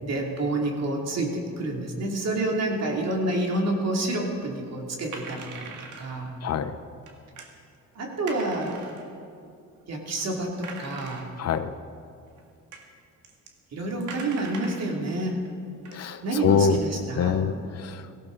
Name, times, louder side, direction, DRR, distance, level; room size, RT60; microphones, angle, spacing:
voice 1, 0.0-5.7 6.0-6.3 7.9-8.8 9.9-11.3 13.7-15.4 16.2-17.4, right 2 dB, 60° right, 0 dB, 2.9 m, -28 dB
sound 1, 5.1-6.2 7.0-7.5 8.3-9.1 9.8-9.9 10.2-10.3 10.6-11.6 12.4-12.5 12.7-12.9 13.2-13.5 14.0-15.0 15.5-15.6 15.9-16.4, right 4 dB, 80° right, 1.9 m, -42 dB
voice 2, 6.4-6.8 11.4-11.7 15.9-16.8 17.2-18.1, left 6 dB, 55° left, 11 dB, 0.8 m, -25 dB
17.5 x 15.5 x 4.0 m, 2.5 s
cardioid pair, 90°, 30 cm